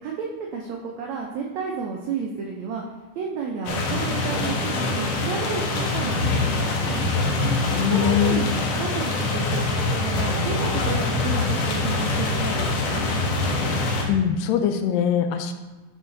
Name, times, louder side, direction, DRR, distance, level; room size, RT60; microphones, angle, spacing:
voice 1, 0.0-2.8 3.1-7.1 7.8-9.8 10.0-13.1, right 5 dB, 80° right, -1 dB, 1.6 m, -32 dB
sound 1, 3.7-14.1, left 3 dB, 60° left, 2.1 m, -24 dB
voice 2, 7.7-8.4 13.6-15.5, left 8 dB, 80° left, 7 dB, 2.2 m, -23 dB
11.0 x 4.9 x 3.9 m, 1.2 s
omnidirectional pair, 4.1 m